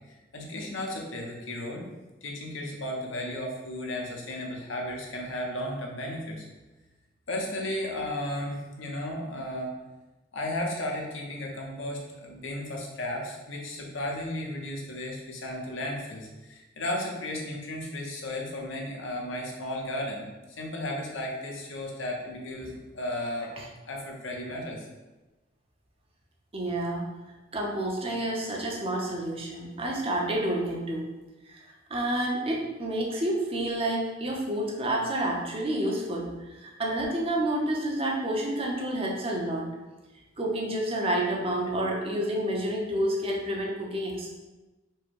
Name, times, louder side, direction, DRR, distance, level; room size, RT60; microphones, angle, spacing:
voice 1, 0.1-1.9 2.2-6.5 7.3-9.7 10.3-20.3 20.6-23.5 23.9-24.9, left 1 dB, 75° left, -1 dB, 0.9 m, -34 dB
voice 2, 26.5-27.0 27.5-31.1 31.5-31.6 31.9-39.7 40.4-44.3, right 1 dB, 30° right, -1 dB, 0.7 m, -29 dB
4.6 x 2.2 x 4.6 m, 1.1 s
head